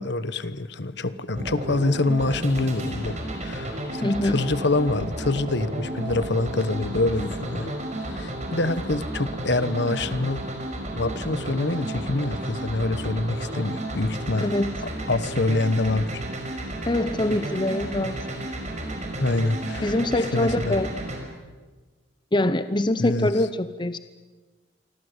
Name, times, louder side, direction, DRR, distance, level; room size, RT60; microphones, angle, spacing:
voice 1, 0.0-7.8 8.0-10.4 10.9-14.5 15.1-16.2 19.2-20.8 23.0-23.3, left 2 dB, 60° left, 14 dB, 1.3 m, -26 dB
sound 1, 1.4-21.2, right 1 dB, 40° right, 5.5 m, -32 dB
voice 2, 4.0-4.4 14.4-14.7 16.8-18.5 19.8-20.9 22.3-24.0, left 1 dB, 25° left, 12 dB, 0.8 m, -24 dB
28.0 x 24.5 x 8.1 m, 1.3 s
head